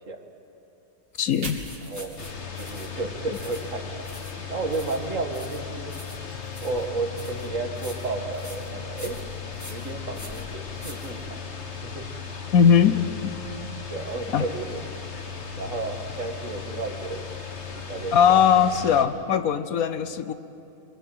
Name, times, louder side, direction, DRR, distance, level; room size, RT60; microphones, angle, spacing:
Fire, 1.0-4.2 4.6-6.6, right 2 dB, 40° right, 2.9 m, -46 dB
sound 1, 1.1-11.6, left 1 dB, 10° left, 2.1 m, -46 dB
voice 1, 1.2-1.6 3.3-3.4 12.5-13.0 14.3-14.4 18.1-20.3, left 7 dB, 70° left, 12 dB, 1.1 m, -19 dB
voice 2, 1.8-2.2 2.6-3.9 4.5-5.9 6.6-9.2 9.7-11.4 11.8-12.0 12.8-13.0 13.9-14.9 15.6-17.4 17.7-18.4, right 3 dB, 55° right, 4 dB, 2.1 m, -32 dB
sound 2, 2.2-19.1, left 6 dB, 45° left, 1.7 m, -37 dB
24.0 x 21.0 x 7.8 m, 2.8 s
omnidirectional pair, 1.6 m